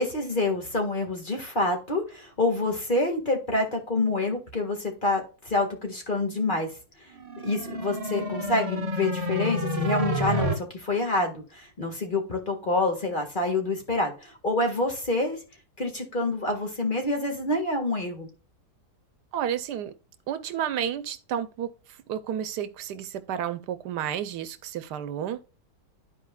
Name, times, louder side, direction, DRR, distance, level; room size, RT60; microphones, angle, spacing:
voice 1, 0.0-6.7 7.4-15.4 15.8-18.3, left 2 dB, 30° left, 1.8 m, -27 dB
sound 1, 7.2-10.5, equal, 30° right, 0.8 m, -29 dB
voice 2, 19.3-19.9 20.3-21.7 22.1-25.4, right 9 dB, 80° right, 1.3 m, -31 dB
13.0 x 4.5 x 2.3 m
omnidirectional pair, 1.8 m